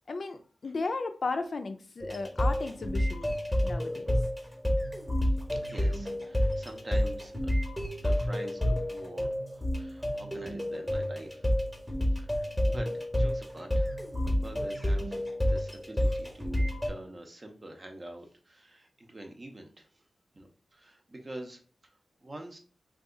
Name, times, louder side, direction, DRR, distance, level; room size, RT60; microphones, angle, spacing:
voice 1, 0.1-3.3 3.6-4.1, left 3 dB, 55° left, 0.4 m, -35 dB
sound 1, 2.0-16.9, left 1 dB, ahead, 0.9 m, -29 dB
voice 2, 5.5-7.3 8.0-11.5 12.2-13.9 14.3-19.9 20.3-21.9 22.2-22.6, right 1 dB, 35° right, 0.6 m, -46 dB
2.7 x 2.3 x 3.7 m
wide cardioid pair, 105°, 0 cm